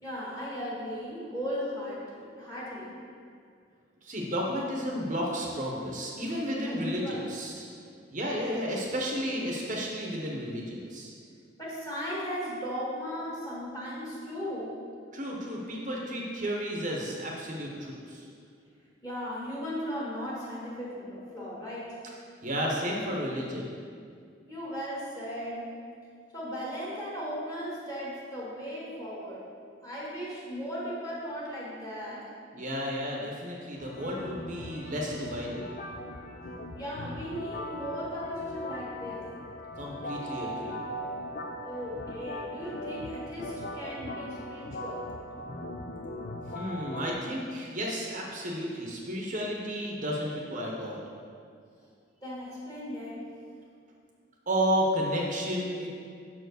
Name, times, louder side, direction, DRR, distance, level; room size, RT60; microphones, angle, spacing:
voice 1, 0.0-2.9 6.7-7.2 11.6-14.7 19.0-22.0 24.5-25.7 26.3-29.4 29.8-32.2 36.7-39.2 41.6-45.0 52.2-53.2, equal, 20° left, -7 dB, 1.8 m, -37 dB
voice 2, 4.0-7.7 8.1-11.1 15.1-18.3 22.4-23.7 32.5-35.7 39.8-40.8 46.5-51.0 54.5-55.9, equal, 40° right, -2 dB, 0.9 m, -32 dB
sound 1, 33.8-47.1, left 1 dB, 45° left, 0.5 m, -39 dB
5.9 x 4.6 x 6.3 m, 2.3 s
head